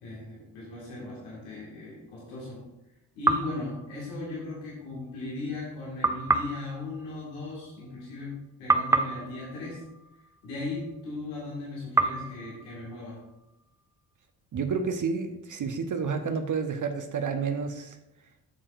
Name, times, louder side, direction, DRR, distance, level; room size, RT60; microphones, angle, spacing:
voice 1, 0.0-2.7 3.1-8.3 8.6-9.8 10.4-13.2, left 3 dB, 75° left, -6 dB, 2.1 m, -37 dB
sound 1, 3.2-4.6 6.0-8.3 8.7-11.0 12.0-13.8, right 3 dB, 5° right, 0.5 m, -30 dB
voice 2, 14.5-18.0, right 5 dB, 40° right, 6 dB, 1.0 m, -30 dB
11.5 x 7.2 x 2.6 m, 0.91 s
figure-of-eight pair, 40°, 49 cm